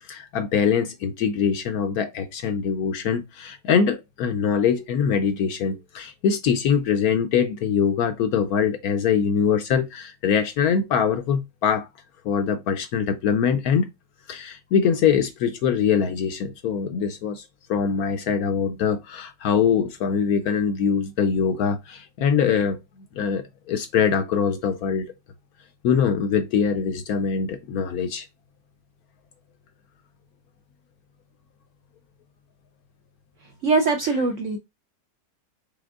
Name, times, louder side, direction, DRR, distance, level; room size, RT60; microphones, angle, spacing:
voice 1, 0.0-11.9 12.2-13.9 14.3-17.4 17.7-22.8 23.1-25.1 25.8-28.3, left 7 dB, 70° left, 0.9 m, -23 dB
voice 2, 33.6-34.6, right 3 dB, 65° right, 0.7 m, -22 dB
5.1 x 3.5 x 2.3 m
omnidirectional pair, 1.9 m